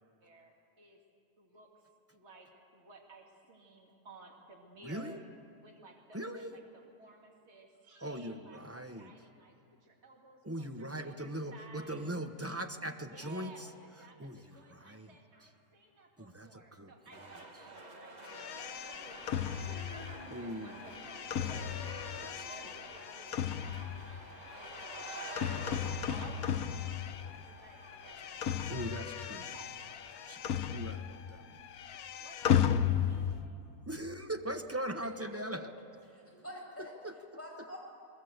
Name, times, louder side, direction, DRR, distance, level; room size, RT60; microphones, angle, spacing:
voice 1, 0.2-1.0 1.4-1.8 2.1-5.2 5.6-12.0 12.9-18.2 18.5-30.6 32.1-33.6, right 2 dB, 50° right, 0 dB, 2.5 m, -56 dB
voice 2, 4.8-5.2 6.1-6.5 8.0-9.1 10.4-13.7 14.2-15.1 16.2-16.9 20.3-20.8 22.2-22.3 28.7-29.5 30.3-30.4 30.7-31.0 33.9-35.7 37.0-37.1, right 1 dB, 10° right, 6 dB, 1.0 m, -40 dB
sound 1, 17.1-30.4, right 2 dB, 30° right, 1.7 m, -50 dB
sound 2, 18.3-27.5 27.8-31.3 31.5-33.4, left 9 dB, 85° left, 1.3 m, -35 dB
voice 3, 36.1-36.9 37.3-37.8, left 1 dB, 10° left, -4 dB, 7.6 m, -46 dB
29.0 x 20.5 x 8.0 m, 2.5 s
omnidirectional pair, 1.5 m